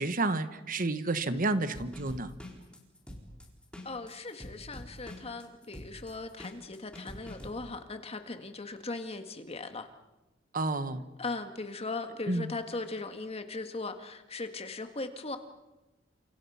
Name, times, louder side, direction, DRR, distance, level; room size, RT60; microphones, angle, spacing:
voice 1, 0.0-2.3 10.5-11.1 12.3-12.5, right 2 dB, 45° right, 12 dB, 1.3 m, -30 dB
sound 1, 1.7-7.5, left 1 dB, 5° left, 4.4 m, -45 dB
voice 2, 3.8-9.9 11.2-15.4, left 3 dB, 30° left, 7 dB, 1.9 m, -38 dB
30.0 x 28.0 x 5.8 m, 1.1 s
head